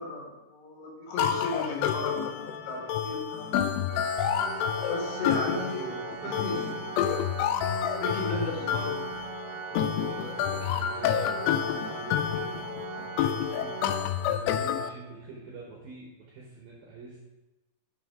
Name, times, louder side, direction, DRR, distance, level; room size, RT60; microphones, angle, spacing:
voice 1, 0.0-4.0 4.8-5.8 6.2-6.6 8.0-9.0, left 2 dB, 65° left, -2 dB, 3.6 m, -35 dB
sound 1, 1.2-14.9, left 9 dB, 90° left, 2.5 m, -29 dB
Organ, 3.9-14.7, right 8 dB, 90° right, 3.1 m, -40 dB
voice 2, 5.1-6.8 9.7-13.7 14.3-17.2, right 4 dB, 70° right, -3 dB, 2.3 m, -45 dB
11.0 x 5.8 x 3.7 m, 1.0 s
omnidirectional pair, 5.6 m